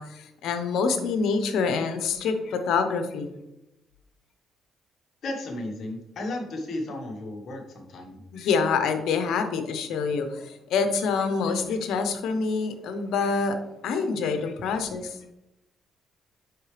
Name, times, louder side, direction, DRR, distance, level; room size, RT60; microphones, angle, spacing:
voice 1, 0.0-3.3 8.3-10.3 10.7-13.6 13.8-15.2, left 5 dB, 80° left, 7 dB, 0.9 m, -26 dB
voice 2, 5.2-8.2 9.6-9.8 10.3-10.4, left 1 dB, 60° left, 2 dB, 1.4 m, -34 dB
8.2 x 5.6 x 3.3 m, 0.88 s
cardioid pair, 90°, 0 cm